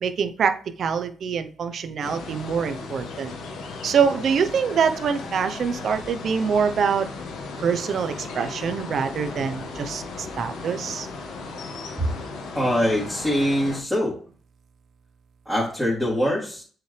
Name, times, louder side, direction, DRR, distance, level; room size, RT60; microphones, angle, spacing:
voice 1, 0.0-3.3 3.8-7.1 7.6-11.1, right 6 dB, 60° right, 9 dB, 0.8 m, -25 dB
sound 1, 2.0-13.8, left 3 dB, 85° left, 1.6 m, -36 dB
voice 2, 12.5-14.2 15.4-16.6, equal, ahead, -8 dB, 2.9 m, -23 dB
7.7 x 4.9 x 3.4 m, 0.42 s
cardioid pair, 90°, 0 cm